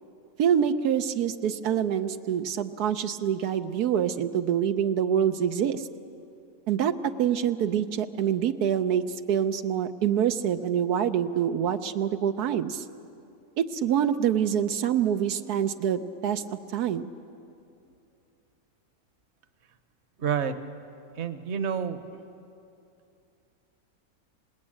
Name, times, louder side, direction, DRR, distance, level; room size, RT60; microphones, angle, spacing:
voice 1, 0.4-5.8 6.7-9.0 9.3-12.8 13.6-17.1, right 9 dB, 85° right, 8 dB, 1.3 m, -26 dB
voice 2, 20.2-20.6 21.2-22.0, right 7 dB, 50° right, 10 dB, 1.2 m, -28 dB
26.5 x 19.5 x 8.8 m, 2.7 s
omnidirectional pair, 1.6 m